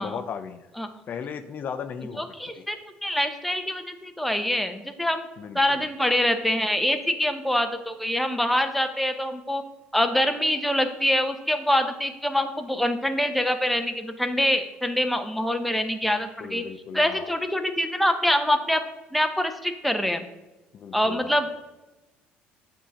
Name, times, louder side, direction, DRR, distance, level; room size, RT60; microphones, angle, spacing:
voice 1, 0.0-0.7 1.1-2.8 5.4-5.8 16.4-17.4 20.7-21.5, left 7 dB, 50° left, 8 dB, 0.4 m, -37 dB
voice 2, 2.2-2.8 3.0-5.3 5.5-9.6 9.9-16.6 16.9-18.8 19.1-20.3 20.9-21.5, left 1 dB, ahead, 6 dB, 0.5 m, -25 dB
7.4 x 2.7 x 5.0 m, 1.1 s
cardioid pair, 95°, 4 cm